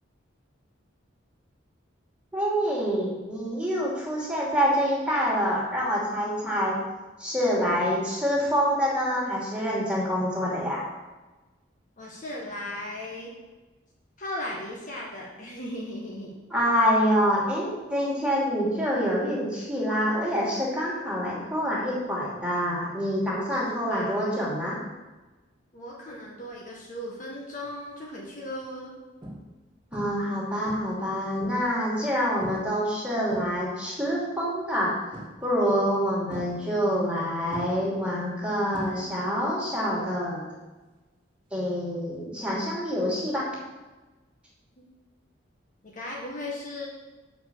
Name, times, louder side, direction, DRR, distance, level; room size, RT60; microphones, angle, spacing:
voice 1, 2.3-6.8 7.2-10.8 16.5-24.8 29.9-34.9 35.4-40.4 41.5-43.5, equal, 5° right, -6 dB, 2.8 m, -26 dB
voice 2, 7.6-7.9 12.0-13.3 14.2-16.3 23.9-24.3 25.7-28.9 44.8-44.9 45.8-46.9, left 1 dB, 40° left, -3 dB, 1.5 m, -37 dB
sound 1, 27.6-27.9 28.5-28.6 29.2-29.6 29.9-30.3 30.7-31.8 32.4-32.8 33.1-33.9 35.1-35.6 36.3-37.2 37.5-39.4 39.7-40.1 42.1-42.2, right 1 dB, 25° right, 2.2 m, -41 dB
7.6 x 5.2 x 6.9 m, 1.2 s
head